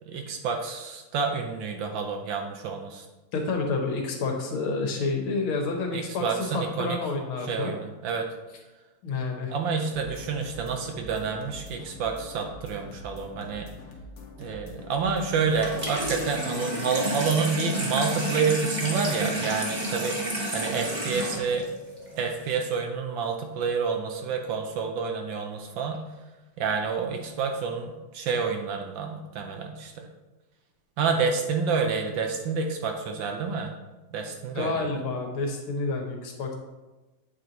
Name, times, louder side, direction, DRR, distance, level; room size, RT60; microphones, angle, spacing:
voice 1, 0.0-3.1 5.9-7.0 7.4-8.3 9.5-13.7 14.4-21.7 22.2-26.0 26.6-30.1 31.0-33.7 34.1-34.9, right 5 dB, 70° right, 3 dB, 1.3 m, -29 dB
voice 2, 3.3-7.7 9.0-9.5 34.6-36.5, left 3 dB, 70° left, 2 dB, 1.8 m, -29 dB
sound 1, 9.8-16.3, left 2 dB, 55° left, 1.2 m, -44 dB
Water tap faucet / Sink (filling or washing), 15.5-22.5, right 1 dB, 25° right, 1.0 m, -31 dB
8.3 x 4.4 x 3.9 m, 1.1 s
omnidirectional pair, 2.4 m